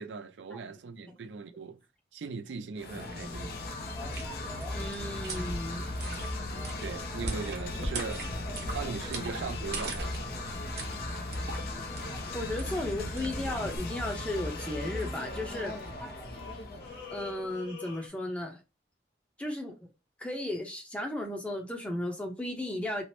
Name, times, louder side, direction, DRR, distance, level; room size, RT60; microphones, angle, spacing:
voice 1, 0.0-1.8 2.1-3.6 6.8-8.2 8.7-10.3, right 5 dB, 85° right, 0.4 m, -39 dB
sound 1, 2.8-17.5, left 2 dB, 60° left, 0.5 m, -37 dB
voice 2, 4.0-5.9 12.1-16.1 17.1-18.6 19.4-19.7 20.2-23.0, left 1 dB, 5° left, 0.6 m, -35 dB
sound 2, 4.0-13.8, right 2 dB, 60° right, 0.7 m, -41 dB
sound 3, 11.0-11.2 13.9-15.7 16.1-18.1, left 7 dB, 75° left, 0.9 m, -48 dB
3.1 x 2.0 x 2.9 m
head